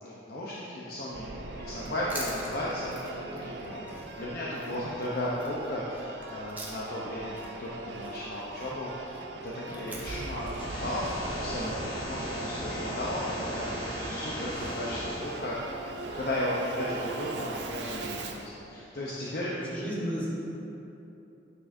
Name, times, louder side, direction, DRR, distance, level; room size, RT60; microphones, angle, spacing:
voice 1, 0.0-3.8 4.2-9.2 9.4-15.8 16.1-19.5, left 1 dB, 55° left, -6 dB, 0.8 m, -35 dB
Singing / Musical instrument, 1.1-18.5, right 2 dB, 70° right, 0.5 m, -39 dB
Chewing mastication, 1.7-7.1 7.3-11.7, right 2 dB, 10° right, 0.8 m, -46 dB
sound 1, 10.4-15.4, left 1 dB, 30° left, 0.9 m, -37 dB
voice 2, 19.5-20.3, equal, 10° left, -9 dB, 1.3 m, -34 dB
9.3 x 6.0 x 2.6 m, 3.0 s
head